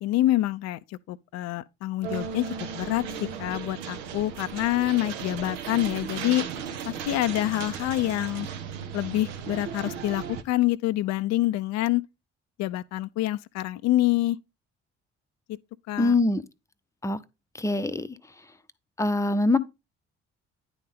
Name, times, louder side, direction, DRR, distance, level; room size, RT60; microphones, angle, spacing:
voice 1, 0.0-3.0 3.4-6.4 6.9-8.5 8.9-12.0 12.6-14.4 15.9-16.1, left 15 dB, 50° left, 0.5 m, -26 dB
sound 1, 2.0-10.4, right 7 dB, 80° right, 0.8 m, -36 dB
voice 2, 16.0-16.4 17.0-17.2 17.6-18.1 19.0-19.6, left 2 dB, 10° left, 0.7 m, -23 dB
9.9 x 3.5 x 5.2 m
figure-of-eight pair, 45°, 36 cm